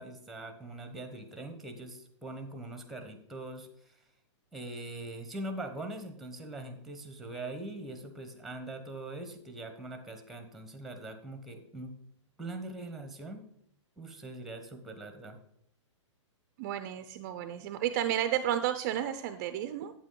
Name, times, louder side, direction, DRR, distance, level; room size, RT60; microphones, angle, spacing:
voice 1, 0.0-4.0 4.5-11.9 12.4-13.4 14.0-15.4, right 2 dB, ahead, 7 dB, 0.9 m, -42 dB
voice 2, 16.6-19.9, right 11 dB, 35° right, 10 dB, 0.5 m, -32 dB
8.5 x 8.1 x 3.8 m, 0.68 s
hypercardioid pair, 150°, 16 cm